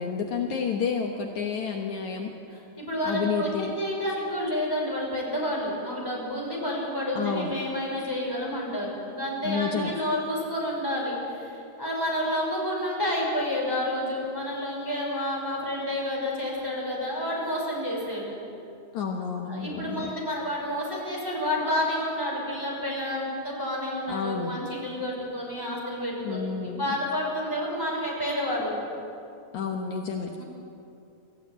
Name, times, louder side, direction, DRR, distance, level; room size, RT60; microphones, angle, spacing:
voice 1, 0.0-2.3 3.0-3.7 7.2-7.6 9.4-9.9 18.9-20.1 24.1-24.5 26.2-26.9 29.5-30.3, left 6 dB, 70° left, 2 dB, 2.5 m, -30 dB
voice 2, 2.5-18.3 19.5-28.7 30.4-30.5, left 1 dB, 5° left, -4 dB, 5.9 m, -30 dB
24.5 x 15.0 x 9.3 m, 2.6 s
omnidirectional pair, 3.6 m